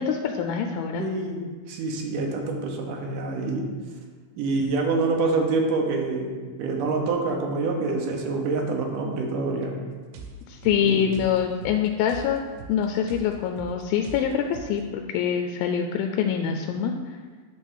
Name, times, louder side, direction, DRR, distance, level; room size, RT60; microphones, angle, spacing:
voice 1, 0.0-1.1 10.5-12.4 12.7-16.9, left 8 dB, 85° left, 4 dB, 2.3 m, -25 dB
voice 2, 1.0-3.7 4.4-9.8 10.8-11.2, right 3 dB, 70° right, 1 dB, 2.3 m, -26 dB
sound 1, 10.1-14.9, right 3 dB, 90° right, 2.8 m, -42 dB
10.0 x 3.7 x 6.3 m, 1.5 s
omnidirectional pair, 4.3 m